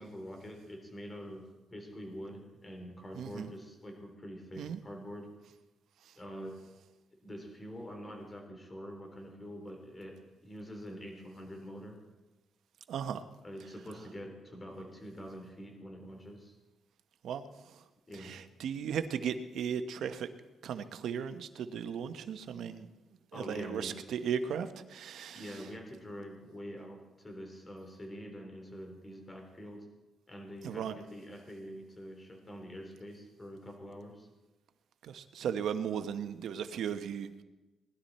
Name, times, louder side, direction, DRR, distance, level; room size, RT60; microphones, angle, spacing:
voice 1, 0.0-5.3 6.2-6.6 7.2-12.0 13.4-16.6 18.1-18.4 23.3-24.1 25.3-29.8 30.3-34.3, equal, 20° left, 2 dB, 3.7 m, -45 dB
voice 2, 3.1-3.5 4.6-4.8 6.0-6.2 12.9-13.2 17.2-17.8 18.1-20.3 20.6-22.9 23.3-25.7 30.6-31.0 35.0-37.4, right 7 dB, 75° right, 9 dB, 1.0 m, -36 dB
20.0 x 11.5 x 4.3 m, 1.1 s
cardioid pair, 115°, 0 cm